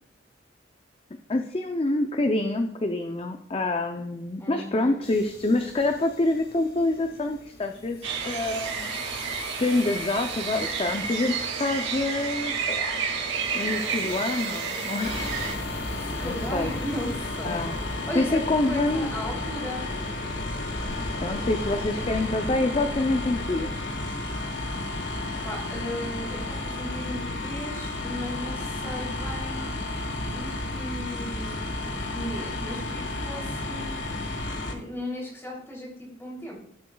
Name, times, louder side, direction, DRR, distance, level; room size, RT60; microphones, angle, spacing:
voice 1, 1.3-9.3 9.6-13.0 13.5-15.2 16.2-16.7 17.4-17.7 18.1-19.1 21.2-23.8, left 2 dB, 30° left, 6 dB, 0.5 m, -26 dB
voice 2, 4.4-5.0 16.0-19.9 25.4-29.6 30.2-34.0 34.7-36.5, equal, 15° left, -3 dB, 3.0 m, -36 dB
sound 1, 5.0-24.1, left 2 dB, 55° left, 1.7 m, -42 dB
sound 2, 8.0-15.5, right 6 dB, 85° right, 2.1 m, -31 dB
sound 3, 15.0-34.7, left 2 dB, 80° left, 1.5 m, -32 dB
17.0 x 7.7 x 2.3 m, 0.76 s
head